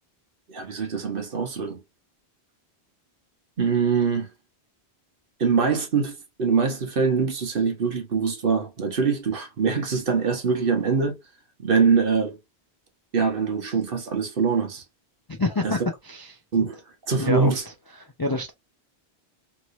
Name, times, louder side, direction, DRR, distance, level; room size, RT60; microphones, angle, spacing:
voice 1, 0.5-1.8 3.6-4.3 5.4-11.2 11.6-12.3 13.1-14.8 15.6-15.7 16.5-16.8 17.1-17.6, right 5 dB, 55° right, 1.1 m, -23 dB
voice 2, 15.3-16.4 17.2-17.6 18.0-18.5, left 2 dB, 30° left, 0.4 m, -27 dB
3.1 x 3.0 x 2.5 m
omnidirectional pair, 1.1 m